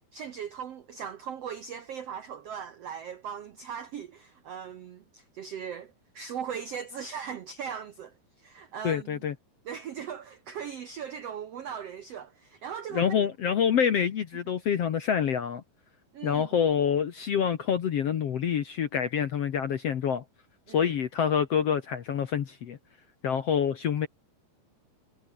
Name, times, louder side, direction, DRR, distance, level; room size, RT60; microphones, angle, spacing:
voice 1, 0.1-9.3 9.6-13.2 16.1-16.6 20.7-20.9, right 7 dB, 75° right, 1.4 m, -39 dB
voice 2, 8.8-9.3 12.9-15.6 16.2-20.2 20.7-22.8 23.2-24.1, left 8 dB, 60° left, 1.7 m, -27 dB
omnidirectional pair, 4.5 m